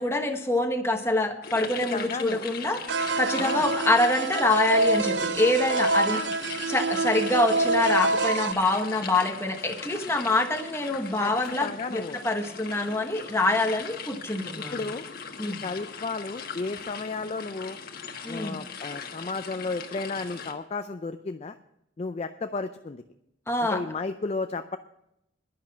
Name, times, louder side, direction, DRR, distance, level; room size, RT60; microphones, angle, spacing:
voice 1, 0.0-2.8 3.2-6.2 6.7-14.8 15.4-15.6 18.2-18.6 23.5-23.8, left 2 dB, 15° left, 4 dB, 1.2 m, -25 dB
sound 1, 1.4-20.5, left 6 dB, 50° left, 1.3 m, -40 dB
voice 2, 1.6-2.4 3.4-3.7 6.1-6.3 11.2-12.2 14.6-15.0 15.4-17.8 18.3-21.6 22.0-23.0 23.6-24.8, left 3 dB, 35° left, 9 dB, 0.4 m, -33 dB
sound 2, 2.9-8.5, right 3 dB, 65° right, 0.5 m, -26 dB
10.5 x 10.5 x 6.1 m, 0.82 s
head